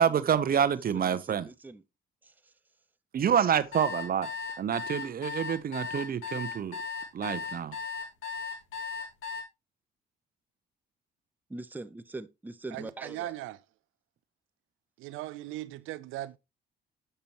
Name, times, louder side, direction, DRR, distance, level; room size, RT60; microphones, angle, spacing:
voice 1, 0.0-1.5 3.1-4.3 4.6-6.8 7.1-7.8, right 8 dB, 50° right, 0.7 m, -27 dB
voice 2, 0.7-1.8 11.5-13.3, right 2 dB, 10° right, 0.5 m, -42 dB
sound 1, 3.7-9.4, left 5 dB, 85° left, 2.2 m, -36 dB
voice 3, 12.7-13.6 15.0-16.4, right 15 dB, 90° right, 0.4 m, -38 dB
6.9 x 6.7 x 2.9 m
cardioid pair, 90°, 20 cm